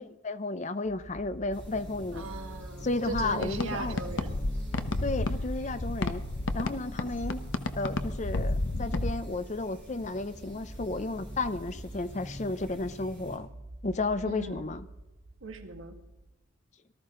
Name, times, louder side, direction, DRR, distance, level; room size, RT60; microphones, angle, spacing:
voice 1, 0.0-2.3 2.8-4.0 5.0-6.2 6.5-7.4 7.7-13.5 13.8-14.9, left 2 dB, 35° left, 12 dB, 0.5 m, -33 dB
sound 1, 0.8-16.4, right 1 dB, 35° right, 1.7 m, -48 dB
sound 2, 1.5-13.4, equal, 5° left, 5.0 m, -45 dB
voice 2, 2.1-4.4 14.3-14.8 15.4-15.9, right 2 dB, 75° right, 4 dB, 1.9 m, -39 dB
sound 3, 3.0-9.1, left 2 dB, 65° left, 0.9 m, -32 dB
18.5 x 13.5 x 3.8 m, 1.0 s
head